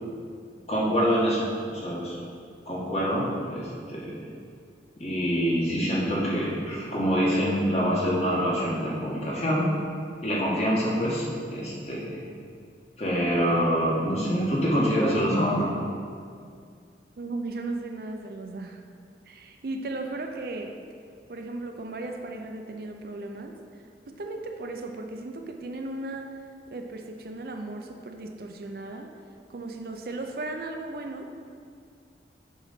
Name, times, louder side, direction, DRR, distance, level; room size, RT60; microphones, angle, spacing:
voice 1, 0.7-2.2 2.6-4.2 5.0-9.7 10.2-12.2 13.0-15.7, equal, 35° left, -5 dB, 1.6 m, -25 dB
voice 2, 17.2-18.8 19.3-20.7 21.3-23.5 24.1-26.3 26.7-29.1 29.5-31.3, right 2 dB, 55° right, 4 dB, 0.5 m, -36 dB
7.3 x 4.0 x 5.8 m, 2.3 s
head